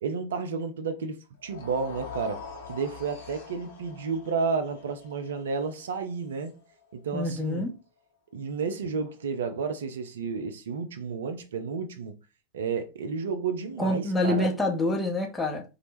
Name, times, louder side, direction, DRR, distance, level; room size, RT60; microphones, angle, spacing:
voice 1, 0.0-2.4 2.7-6.5 6.9-7.7 8.3-12.2 12.5-14.5, right 5 dB, 65° right, 0.4 m, -31 dB
sound 1, 1.4-7.6, left 4 dB, 55° left, 0.7 m, -45 dB
voice 2, 7.1-7.7 13.8-15.6, left 1 dB, 10° left, 0.6 m, -26 dB
2.0 x 2.0 x 3.0 m
figure-of-eight pair, 90°, 0 cm